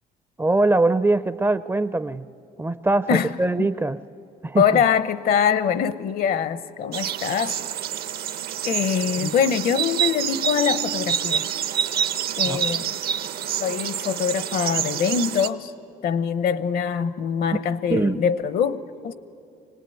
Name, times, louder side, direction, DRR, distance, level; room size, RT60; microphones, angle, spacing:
voice 1, 0.4-2.2 2.6-4.0 4.4-4.8 9.2-9.3 12.4-12.9 17.9-18.2, right 2 dB, 15° right, 0.5 m, -22 dB
voice 2, 4.6-7.6 8.6-11.5 12.4-13.0 13.6-15.7 16.0-19.1, left 7 dB, 60° left, 0.9 m, -23 dB
sound 1, 6.9-15.5, right 9 dB, 65° right, 0.8 m, -27 dB
25.0 x 18.5 x 9.2 m
cardioid pair, 110°, 17 cm